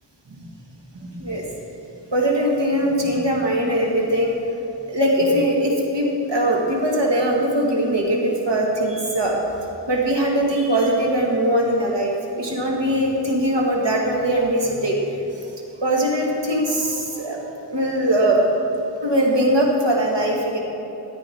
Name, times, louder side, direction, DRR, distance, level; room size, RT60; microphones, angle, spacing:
voice 1, 0.9-1.4 2.1-4.3 4.9-9.4 9.9-15.0 15.8-17.4 17.7-18.4 19.0-20.6, right 1 dB, 75° right, -2 dB, 2.1 m, -21 dB
13.5 x 9.0 x 4.6 m, 3.0 s
wide cardioid pair, 40°, 44 cm